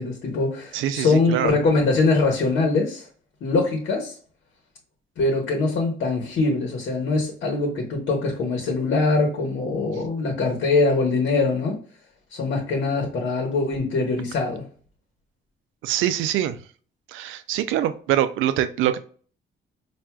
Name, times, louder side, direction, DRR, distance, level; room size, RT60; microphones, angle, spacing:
voice 1, 0.0-3.1 3.4-4.2 5.2-11.8 12.3-14.6, left 3 dB, 70° left, 1.1 m, -23 dB
voice 2, 0.7-1.5 15.8-16.6 17.1-19.0, right 11 dB, 90° right, 0.4 m, -24 dB
4.5 x 2.5 x 2.2 m
cardioid pair, 90°, 20 cm